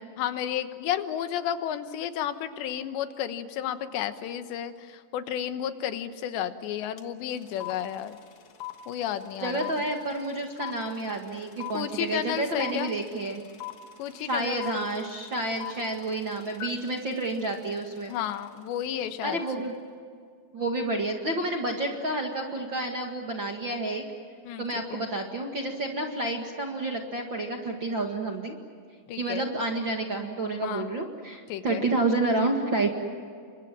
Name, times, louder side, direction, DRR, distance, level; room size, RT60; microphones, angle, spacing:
voice 1, 0.2-8.2 8.9-9.7 11.7-12.9 14.0-14.9 18.1-19.4 24.5-24.6 24.9-25.0 29.1-29.4 30.6-30.9 31.5-31.8, left 10 dB, 90° left, 9 dB, 3.5 m, -32 dB
sound 1, 7.0-7.1 7.3-18.4, left 13 dB, 65° left, 1.4 m, -41 dB
voice 2, 9.4-13.4 14.3-18.1 19.2-19.8 20.5-24.0 24.6-28.6 29.2-32.9, right 2 dB, 45° right, 2 dB, 1.6 m, -29 dB
29.0 x 24.5 x 7.5 m, 2.2 s
omnidirectional pair, 4.9 m